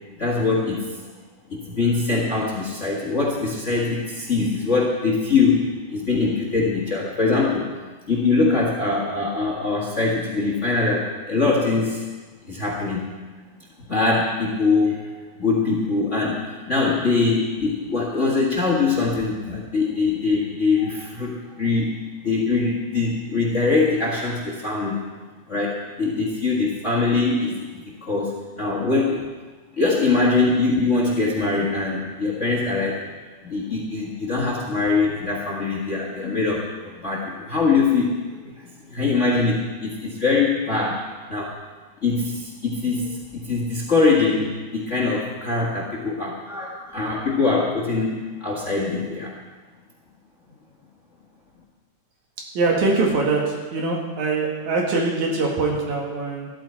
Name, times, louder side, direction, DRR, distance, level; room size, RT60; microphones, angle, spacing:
voice 1, 0.2-1.2 1.5-7.7 8.1-12.0 12.5-13.1 13.9-15.1 15.4-21.9 22.2-25.0 25.5-29.2 29.7-33.0 33.4-41.0 41.3-41.6 42.0-49.3, left 3 dB, 30° left, -2 dB, 1.5 m, -23 dB
voice 2, 52.5-56.5, right 3 dB, 75° right, -1 dB, 3.3 m, -23 dB
14.5 x 13.0 x 4.5 m, 1.3 s
omnidirectional pair, 3.4 m